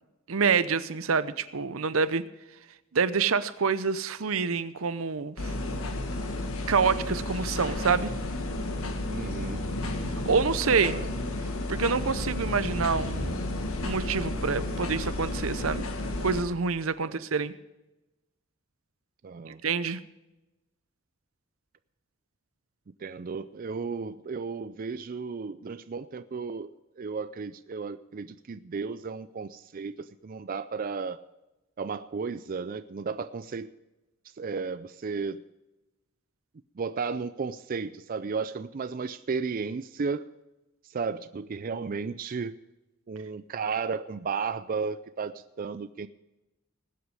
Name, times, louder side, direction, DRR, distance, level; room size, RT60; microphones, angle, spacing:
voice 1, 0.3-2.2 2.9-5.5 6.7-8.1 10.3-11.0 11.7-13.4 13.8-15.9 16.2-17.5 19.5-20.0, right 5 dB, 75° right, 15 dB, 0.7 m, -27 dB
sound 1, 5.4-16.4, left 1 dB, 85° left, 1.6 m, -32 dB
voice 2, 9.1-9.7 10.8-11.1 17.0-17.2 19.2-19.6 23.0-26.7 27.0-31.2 31.8-33.7 34.4-35.4 36.8-40.3 40.8-42.5 43.1-46.1, right 5 dB, 40° right, 12 dB, 0.4 m, -34 dB
19.5 x 8.2 x 4.9 m, 1.0 s
head